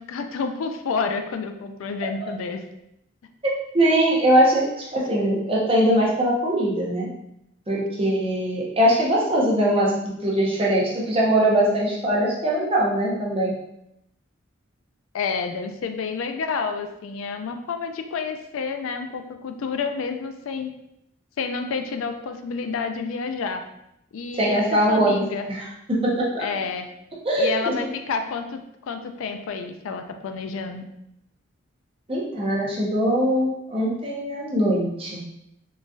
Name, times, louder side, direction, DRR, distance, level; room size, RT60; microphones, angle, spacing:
voice 1, 0.0-2.6 15.1-20.7 21.4-23.6 24.1-25.5 26.4-26.9 27.4-28.6 28.9-30.9, left 5 dB, 85° left, 6 dB, 0.4 m, -29 dB
voice 2, 3.7-7.1 7.7-13.5 24.3-26.4 27.2-27.9 32.1-35.2, right 1 dB, 25° right, -5 dB, 0.7 m, -21 dB
3.8 x 2.5 x 2.3 m, 0.80 s
head